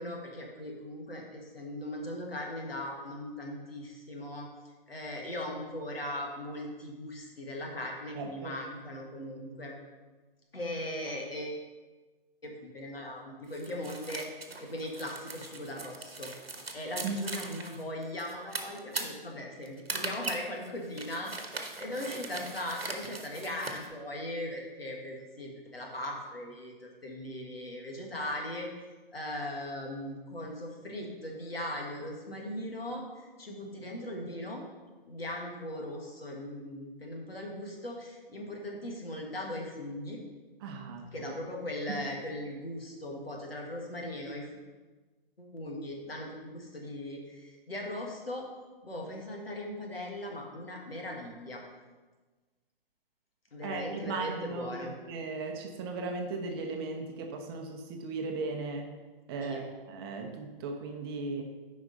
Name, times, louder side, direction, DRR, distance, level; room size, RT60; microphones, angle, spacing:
voice 1, 0.0-4.5 4.9-9.7 10.5-11.6 12.4-14.3 14.6-16.3 16.7-28.7 29.1-34.6 35.1-40.2 41.1-44.5 45.4-48.5 48.8-51.6 53.5-54.9 59.4-59.6, left 1 dB, 85° left, 0 dB, 1.8 m, -39 dB
voice 2, 8.1-8.6 17.0-17.1 40.6-41.3 41.9-42.0 53.6-58.9 59.3-61.4, right 4 dB, 25° right, 3 dB, 0.8 m, -37 dB
sound 1, 13.5-23.9, right 3 dB, 90° right, 1.1 m, -40 dB
8.8 x 5.2 x 4.0 m, 1.3 s
figure-of-eight pair, 130°, 29 cm